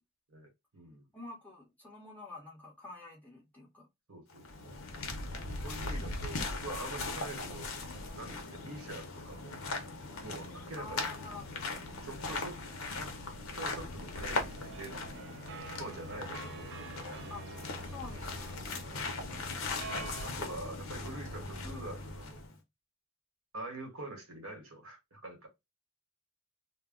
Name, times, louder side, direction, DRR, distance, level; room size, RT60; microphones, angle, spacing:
voice 1, 0.3-1.1 4.1-4.8 5.6-7.7 8.1-9.6 10.2-11.2 12.0-12.6 12.9-13.1 13.5-15.1 15.8-17.3 19.0-19.5 19.9-22.4 23.5-25.5, right 2 dB, 75° right, 1.1 m, -45 dB
voice 2, 1.1-3.9 10.8-11.5 17.3-17.5 17.8-19.4, left 3 dB, 10° left, 1.0 m, -48 dB
sound 1, 4.3-22.6, left 3 dB, 75° left, 0.7 m, -39 dB
sound 2, 14.3-20.3, right 5 dB, 55° right, 0.4 m, -48 dB
2.2 x 2.1 x 3.5 m
head